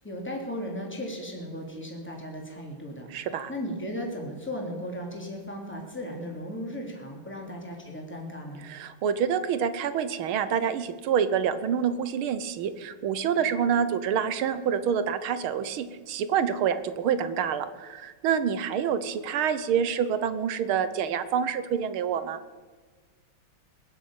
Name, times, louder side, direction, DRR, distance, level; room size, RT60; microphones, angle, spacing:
voice 1, 0.0-3.1 3.5-8.7, equal, 5° left, 0 dB, 2.9 m, -36 dB
voice 2, 3.1-3.5 8.6-22.4, right 8 dB, 75° right, 12 dB, 1.7 m, -27 dB
21.0 x 7.9 x 8.7 m, 1.4 s
omnidirectional pair, 2.4 m